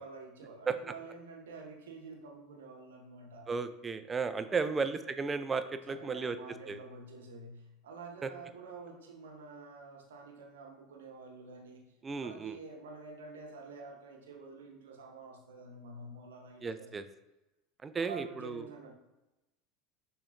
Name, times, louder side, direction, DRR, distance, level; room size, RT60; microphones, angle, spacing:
voice 1, 0.0-3.5 4.4-4.8 5.9-11.9 12.2-16.9 17.9-18.9, right 4 dB, 80° right, 2 dB, 0.8 m, -48 dB
voice 2, 3.5-6.4 6.7-6.8 8.2-8.3 12.0-12.6 16.6-17.0 17.8-18.6, right 4 dB, 25° right, 11 dB, 0.3 m, -34 dB
6.0 x 3.2 x 2.5 m, 0.98 s
hypercardioid pair, 80°, 0 cm